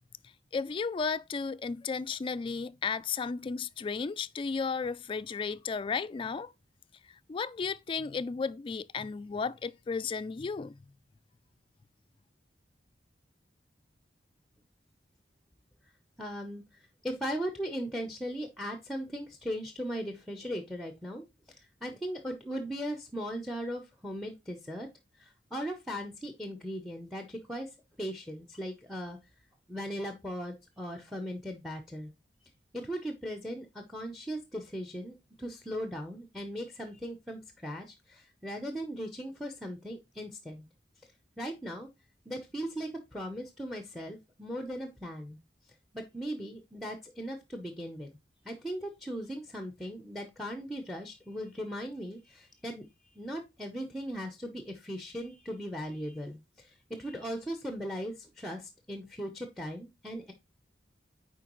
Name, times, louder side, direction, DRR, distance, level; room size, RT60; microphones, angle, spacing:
voice 1, 0.5-6.5 7.3-10.8, left 5 dB, 30° left, 0.3 m, -34 dB
voice 2, 16.2-24.9 25.2-27.7 28.0-29.2 29.7-32.1 32.7-40.7 41.4-41.9 42.3-45.4 45.9-48.1 48.4-52.9 53.1-60.3, equal, ahead, 0.8 m, -38 dB
9.1 x 4.6 x 3.0 m
head